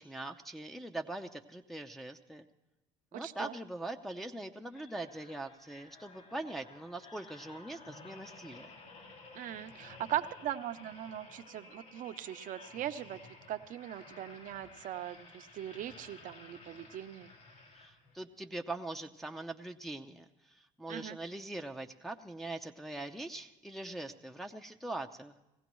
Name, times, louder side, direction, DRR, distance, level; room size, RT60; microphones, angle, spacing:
voice 1, 0.0-2.5 3.1-8.7 17.7-25.3, right 2 dB, ahead, 2 dB, 0.6 m, -42 dB
voice 2, 3.1-3.5 9.3-13.2 13.5-17.3 20.9-21.2, right 11 dB, 55° right, 10 dB, 0.7 m, -40 dB
sound 1, 4.7-18.3 18.8-19.0, left 3 dB, 60° left, 4.7 m, -54 dB
20.0 x 15.5 x 3.1 m, 0.98 s
supercardioid pair, 95°, 16 cm